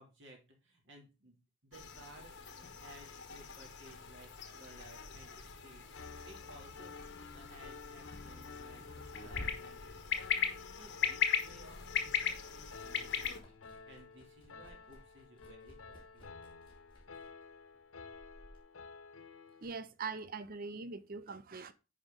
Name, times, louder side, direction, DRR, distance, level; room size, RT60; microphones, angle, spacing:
voice 1, 0.0-1.4 1.6-2.3 2.8-4.3 4.6-5.9 6.2-6.9 7.3-13.5 13.8-16.3, right 1 dB, 60° right, 2.8 m, -58 dB
sound 1, 1.7-13.4, left 8 dB, 60° left, 1.3 m, -39 dB
Piano, 5.9-19.6, left 5 dB, 80° left, 0.9 m, -52 dB
Liquid, 7.1-10.7 11.0-18.6, equal, 25° left, 3.1 m, -54 dB
voice 2, 19.6-21.7, right 4 dB, 45° right, 0.5 m, -42 dB
9.7 x 5.1 x 3.8 m
head